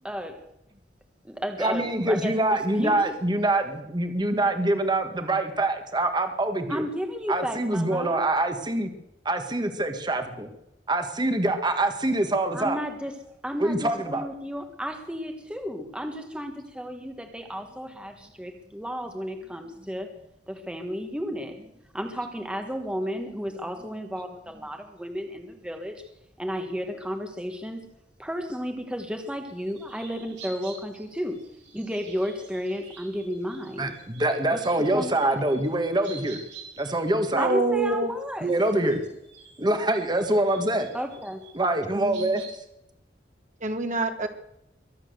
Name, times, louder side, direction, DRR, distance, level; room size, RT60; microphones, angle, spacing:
voice 1, 0.0-0.4 1.2-3.1 6.7-8.2 12.5-13.2 13.4-20.1 20.5-21.6 21.9-26.0 26.4-27.9 28.2-31.4 31.7-33.9 34.5-34.6 34.9-35.4 37.4-38.5 38.8-38.9 40.9-41.4, equal, 5° right, 4 dB, 1.3 m, -33 dB
voice 2, 1.6-6.9 7.3-8.9 9.2-10.5 10.9-12.8 13.6-14.3 33.8-36.4 36.8-37.5 38.4-39.0 39.6-40.9 41.5-42.4, right 1 dB, 25° right, 7 dB, 1.5 m, -25 dB
sound 1, 29.5-38.0 38.4-42.5, right 5 dB, 80° right, 7.0 m, -49 dB
voice 3, 37.3-38.1 42.0-42.3 43.6-44.3, right 2 dB, 45° right, 6 dB, 1.8 m, -26 dB
23.0 x 8.5 x 6.8 m, 0.85 s
head